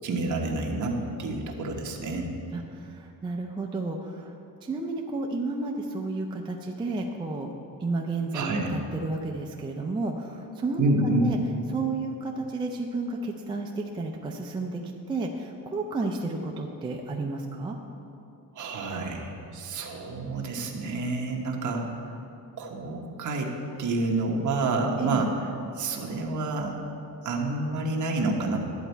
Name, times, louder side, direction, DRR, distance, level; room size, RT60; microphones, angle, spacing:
voice 1, 0.0-2.3 8.3-8.7 10.8-11.2 18.5-21.8 22.6-23.5 23.8-25.3 25.8-26.7 27.2-28.6, right 2 dB, 50° right, 0 dB, 1.2 m, -28 dB
voice 2, 2.5-4.3 4.6-7.5 7.8-11.4 11.7-14.8 15.1-17.8 25.0-25.2, right 3 dB, 15° right, 1 dB, 0.4 m, -32 dB
11.0 x 4.4 x 8.1 m, 2.8 s
cardioid pair, 180°, 39 cm